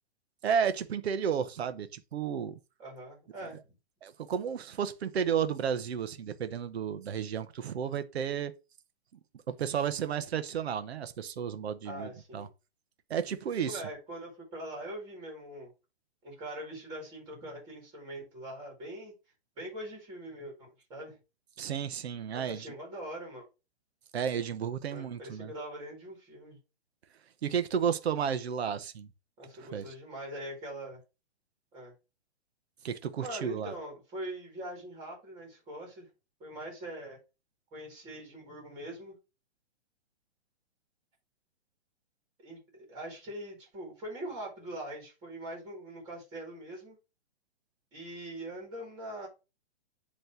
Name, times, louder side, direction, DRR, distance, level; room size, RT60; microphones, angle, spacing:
voice 1, 0.4-2.6 4.0-8.5 9.5-12.5 13.1-13.8 21.6-22.7 24.1-25.5 27.4-29.1 29.6-29.9 32.8-33.7, right 7 dB, 65° right, 0.9 m, -32 dB
voice 2, 2.8-3.6 11.8-12.5 13.7-15.7 16.2-19.1 19.6-21.2 22.3-23.5 24.9-26.6 29.4-31.0 31.7-31.9 33.2-36.1 36.4-37.2 37.7-39.2 42.4-47.0 47.9-49.3, right 1 dB, 10° right, 2.2 m, -42 dB
8.1 x 3.2 x 5.8 m
hypercardioid pair, 180°, 34 cm